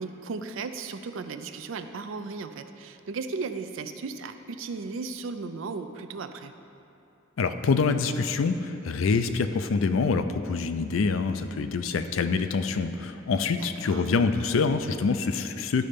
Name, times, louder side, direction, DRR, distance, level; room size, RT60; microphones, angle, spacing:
voice 1, 0.0-6.5 13.6-14.0, right 4 dB, 75° right, 9 dB, 0.4 m, -36 dB
voice 2, 7.4-15.9, left 4 dB, 85° left, 9 dB, 0.4 m, -26 dB
11.5 x 4.2 x 5.1 m, 2.8 s
head